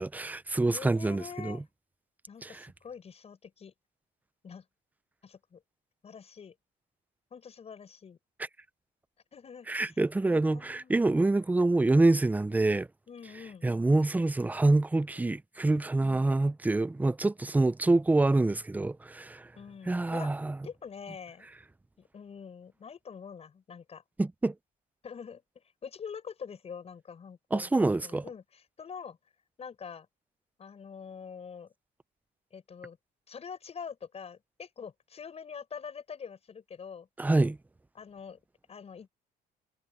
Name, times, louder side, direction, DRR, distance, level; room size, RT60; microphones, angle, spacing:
voice 1, 0.0-1.6 2.4-2.7 9.7-12.9 13.6-19.5 19.9-20.6 24.2-24.5 27.5-28.2 37.2-37.6, right 2 dB, 10° right, 0.6 m, -26 dB
voice 2, 0.7-1.6 2.3-3.7 4.4-4.6 5.2-5.6 6.0-6.5 7.3-8.2 9.3-9.9 10.2-10.9 13.1-13.7 19.6-20.3 20.6-21.5 22.0-24.0 25.0-25.4 25.8-29.2 29.6-30.1 30.6-31.7 32.5-33.0 33.3-37.1 37.9-38.4 38.7-39.1, left 6 dB, 40° left, 6.3 m, -45 dB
cardioid pair, 110°, 17 cm